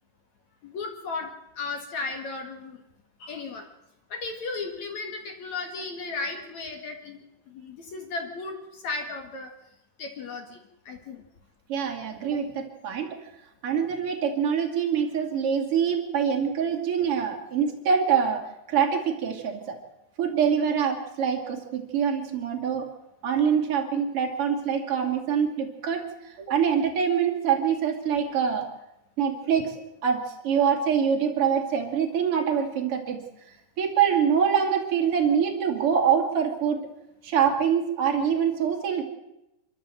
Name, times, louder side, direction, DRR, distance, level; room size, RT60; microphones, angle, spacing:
voice 1, 0.6-1.3 1.6-2.8 3.2-3.6 4.1-7.2 7.5-9.5 10.0-10.6 10.9-11.2, left 3 dB, 60° left, 4 dB, 2.0 m, -35 dB
voice 2, 11.7-13.3 13.6-19.8 20.2-22.9 23.2-28.7 29.2-33.2 33.8-36.9 37.2-39.0, right 7 dB, 35° right, 2 dB, 2.6 m, -25 dB
26.5 x 13.0 x 7.7 m, 0.91 s
omnidirectional pair, 5.7 m